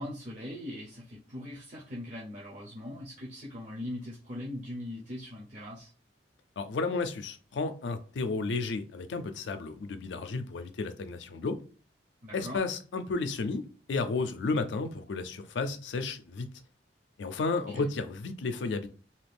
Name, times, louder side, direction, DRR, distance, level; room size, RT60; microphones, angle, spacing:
voice 1, 0.0-5.9 12.2-12.6 17.5-17.9, left 1 dB, 45° right, 0.7 m, -40 dB
voice 2, 6.6-11.6 12.3-16.5 17.2-18.9, left 3 dB, 85° left, 0.4 m, -32 dB
2.8 x 2.5 x 3.3 m
head